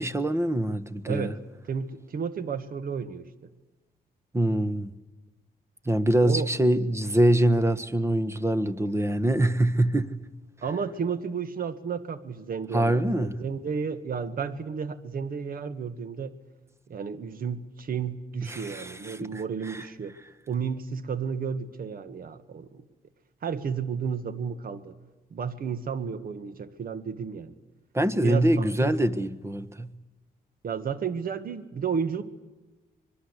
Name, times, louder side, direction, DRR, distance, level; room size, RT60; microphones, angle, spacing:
voice 1, 0.0-1.3 4.3-4.9 5.8-10.2 12.7-13.4 18.4-19.4 19.7-19.8 27.9-29.9, right 1 dB, 15° right, 1.5 m, -24 dB
voice 2, 1.1-1.4 1.6-3.3 6.2-6.5 10.6-16.4 16.9-20.2 20.5-22.9 23.4-25.0 25.3-27.6 28.2-29.0 30.6-32.2, right 6 dB, 65° right, 1.9 m, -32 dB
25.5 x 21.5 x 8.3 m
cardioid pair, 80°, 16 cm